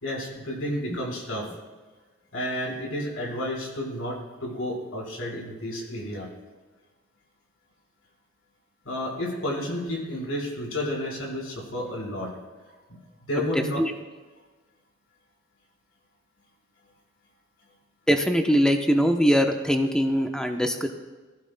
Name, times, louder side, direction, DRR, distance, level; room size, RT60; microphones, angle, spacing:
voice 1, 0.0-1.5 2.3-6.3 8.8-12.3 12.7-13.8, left 1 dB, 85° left, -1 dB, 4.6 m, -31 dB
voice 2, 18.1-20.9, equal, 5° left, 4 dB, 0.7 m, -22 dB
20.0 x 15.0 x 2.2 m, 1.3 s
head